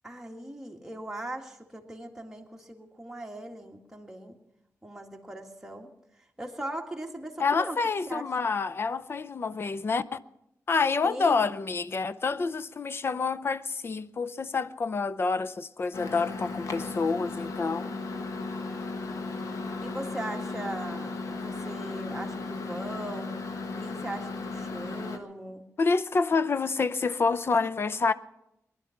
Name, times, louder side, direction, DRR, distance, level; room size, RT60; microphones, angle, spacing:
voice 1, 0.0-4.3 4.8-5.9 6.4-7.8 8.1-8.3 11.0-11.5 19.8-23.4 23.8-25.6, right 1 dB, 10° right, 1.9 m, -39 dB
voice 2, 7.4-10.2 10.7-18.0 25.8-28.1, left 4 dB, 45° left, 0.5 m, -28 dB
Microwave oven, 15.9-25.2, left 3 dB, 80° left, 1.3 m, -35 dB
20.5 x 11.5 x 5.8 m
wide cardioid pair, 110°, 6 cm